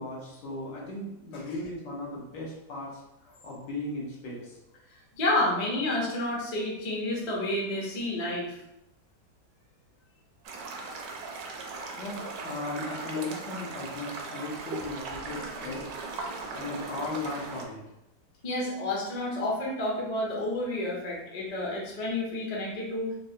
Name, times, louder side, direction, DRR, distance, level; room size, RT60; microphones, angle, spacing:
voice 1, 0.0-4.6 12.0-15.9 16.5-17.8, left 2 dB, 80° left, -4 dB, 1.5 m, -37 dB
voice 2, 5.2-8.6 18.4-23.1, left 1 dB, 40° left, -4 dB, 0.5 m, -30 dB
sound 1, 10.4-17.6, right 4 dB, 70° right, 1.0 m, -38 dB
3.8 x 2.1 x 2.7 m, 0.86 s
omnidirectional pair, 1.8 m